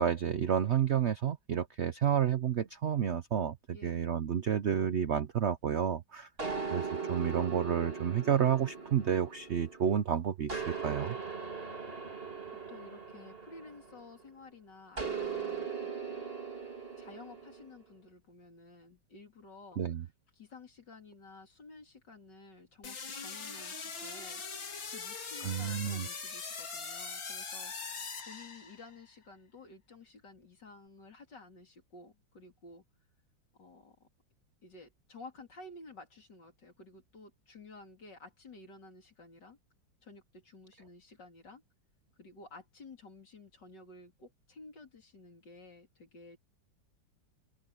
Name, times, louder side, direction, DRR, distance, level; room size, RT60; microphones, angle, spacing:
voice 1, 0.0-3.6 3.8-6.3 6.7-6.8 7.1-11.2 19.8-20.0 25.4-26.1, right 8 dB, 60° right, 0.7 m, -30 dB
voice 2, 3.7-4.0 12.7-16.3 17.0-20.1 20.3-24.4 24.9-32.8 33.6-34.1 34.6-39.6 40.0-41.6 42.2-46.4, left 3 dB, 65° left, 4.0 m, -53 dB
sound 1, 6.4-10.0 10.5-14.2 15.0-17.6, right 5 dB, 30° right, 2.8 m, -39 dB
sound 2, 22.8-29.0, left 4 dB, 80° left, 3.5 m, -41 dB
open air
omnidirectional pair, 2.0 m